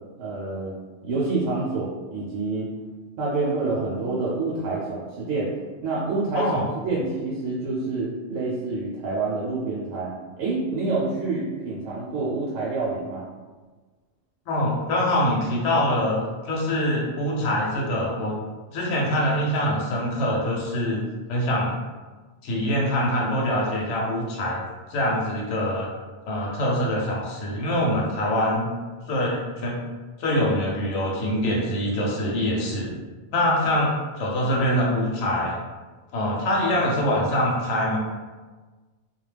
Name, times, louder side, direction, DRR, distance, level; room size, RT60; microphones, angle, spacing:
voice 1, 0.2-0.7 1.0-2.7 3.2-5.5 5.8-6.5 6.8-13.2, right 3 dB, 80° right, -5 dB, 0.9 m, -27 dB
voice 2, 6.3-6.7 14.5-18.3 18.7-21.0 21.3-21.7 22.4-24.6 24.9-25.9 26.3-28.7 29.1-29.8 30.2-32.9 33.3-35.5 36.1-38.0, left 1 dB, 70° left, -3 dB, 0.9 m, -24 dB
2.3 x 2.2 x 3.2 m, 1.3 s
omnidirectional pair, 1.3 m